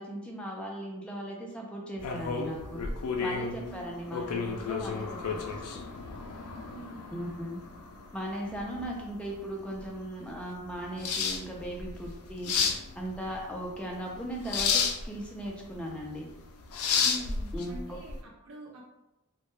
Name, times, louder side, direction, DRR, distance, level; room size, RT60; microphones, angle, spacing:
voice 1, 0.0-2.8 3.2-5.8 7.1-7.6 8.1-12.5 12.9-16.3 17.5-18.0, right 1 dB, 5° left, -2 dB, 0.3 m, -38 dB
sound 1, 2.0-18.2, left 5 dB, 80° left, 0.3 m, -33 dB
voice 2, 3.6-4.2 6.7-7.3 17.0-18.9, right 1 dB, 65° right, -2 dB, 0.4 m, -46 dB
2.1 x 2.1 x 3.0 m, 0.94 s
head